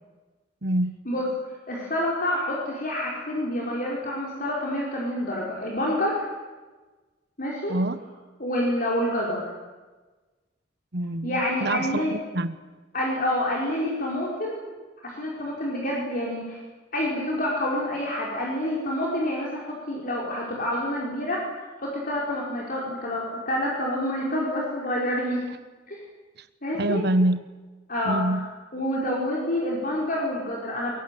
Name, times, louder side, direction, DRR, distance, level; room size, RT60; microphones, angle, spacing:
voice 1, 0.6-1.0 7.7-8.0 10.9-12.6 26.4-26.5 26.7-27.4 28.0-28.5, right 1 dB, 60° right, 11 dB, 1.2 m, -26 dB
voice 2, 1.7-6.3 7.4-7.8 8.4-9.4 11.2-12.2 12.9-14.6 15.0-16.6 16.9-25.4 25.9-26.0 26.6-27.0 27.9-28.4 28.7-30.9, left 1 dB, 50° left, -3 dB, 5.4 m, -28 dB
23.0 x 22.5 x 9.4 m, 1.3 s
head